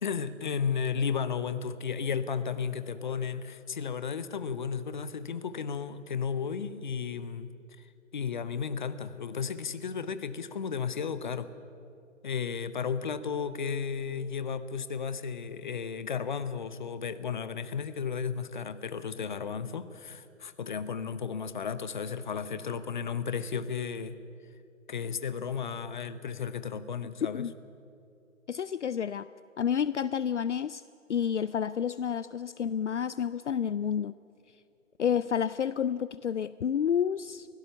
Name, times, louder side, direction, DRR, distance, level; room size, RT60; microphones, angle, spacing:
voice 1, 0.0-7.5 8.1-11.5 12.2-24.2 24.9-27.4, left 6 dB, 40° left, 14 dB, 0.8 m, -34 dB
voice 2, 28.5-29.3 29.6-30.8 31.1-34.1 35.0-37.5, left 8 dB, 65° left, 16 dB, 0.5 m, -30 dB
24.0 x 16.5 x 6.9 m, 2.6 s
figure-of-eight pair, 140°, 39 cm